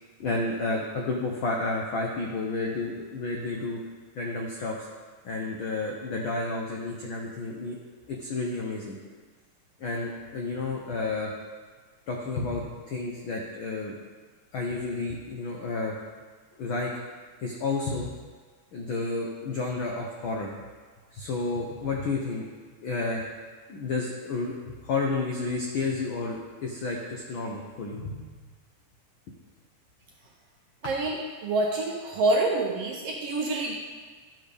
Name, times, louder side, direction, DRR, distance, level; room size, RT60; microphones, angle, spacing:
voice 1, 0.2-3.8 4.1-4.9 5.2-7.8 8.1-9.0 9.8-11.3 12.1-14.0 14.5-16.0 16.6-16.9 17.4-18.2 18.7-20.5 21.1-22.5 22.8-23.3 23.7-28.2, left 3 dB, 85° left, -1 dB, 1.1 m, -31 dB
voice 2, 30.8-33.7, right 2 dB, 75° right, -1 dB, 1.4 m, -27 dB
12.0 x 6.6 x 3.4 m, 1.5 s
omnidirectional pair, 3.4 m